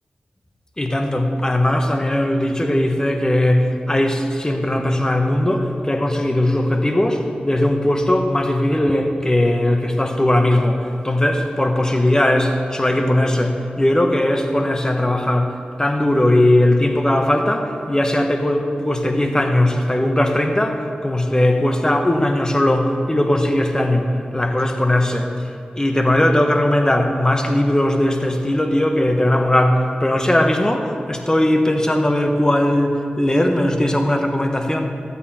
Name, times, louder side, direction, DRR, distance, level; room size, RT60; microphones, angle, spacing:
voice 1, 0.8-34.9, left 1 dB, 20° left, 4 dB, 1.3 m, -19 dB
13.0 x 8.4 x 4.4 m, 2.4 s
cardioid pair, 45°, 3 cm